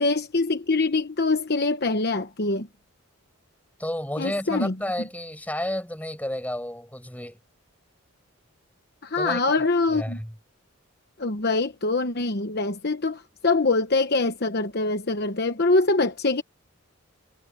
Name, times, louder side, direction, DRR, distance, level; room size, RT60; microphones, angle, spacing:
voice 1, 0.0-2.7 4.2-4.7 9.0-10.2 11.2-16.4, left 3 dB, 50° left, 1.0 m, -24 dB
voice 2, 3.8-7.4 9.2-9.4 9.9-10.3, left 1 dB, 5° left, 7.0 m, -31 dB
head